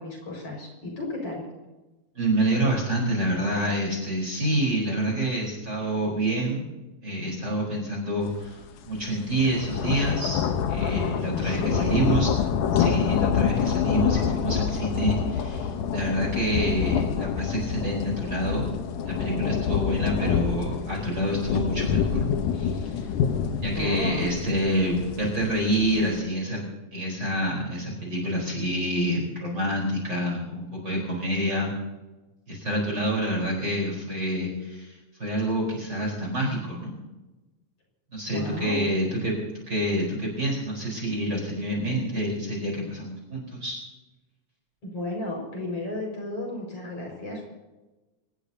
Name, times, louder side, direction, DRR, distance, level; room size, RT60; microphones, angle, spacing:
voice 1, 0.0-1.5 11.3-12.1 20.0-20.4 23.7-24.3 38.3-38.9 44.8-47.5, left 2 dB, 50° left, -1 dB, 6.4 m, -33 dB
voice 2, 2.1-6.7 7.0-12.3 12.7-18.7 19.1-23.1 23.6-26.6 26.9-31.7 32.5-34.9 35.2-36.9 38.1-39.4 39.7-43.8, right 1 dB, 35° right, -2 dB, 4.8 m, -27 dB
sound 1, 8.4-8.6 8.9-26.2, left 7 dB, 85° left, 2.6 m, -27 dB
26.5 x 19.0 x 2.8 m, 1.1 s
omnidirectional pair, 3.5 m